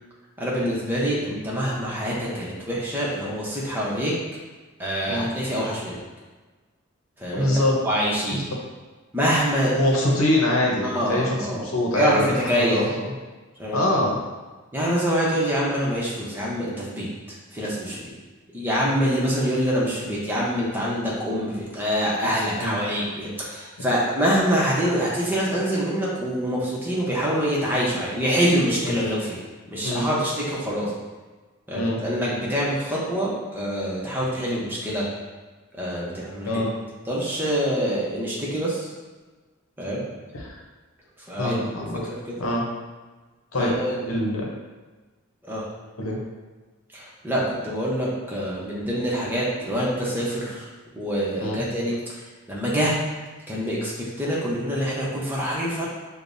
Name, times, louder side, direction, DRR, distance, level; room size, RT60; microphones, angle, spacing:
voice 1, 0.4-4.1 4.8-6.0 7.2-7.5 7.8-8.4 9.1-9.8 10.8-11.6 11.9-12.8 13.6-13.8 14.7-18.1 18.5-29.4 29.7-30.9 31.7-35.1 35.7-36.7 37.1-38.9 39.8-40.0 41.3-42.2 43.6-44.1 45.4-45.6 46.9-50.7 51.0-52.0 52.5-53.0 53.5-55.9, equal, 10° right, -6 dB, 0.9 m, -25 dB
voice 2, 7.3-7.8 8.3-8.4 9.8-13.1 13.7-14.2 22.6-22.8 28.8-28.9 29.8-30.1 31.7-32.0 36.4-36.7 40.3-40.6 41.4-42.0 42.4-42.7 43.5-43.7 44.1-44.5 46.0-46.2 51.4-51.6, left 1 dB, 85° left, -1 dB, 0.8 m, -24 dB
6.6 x 2.3 x 2.6 m, 1.3 s
head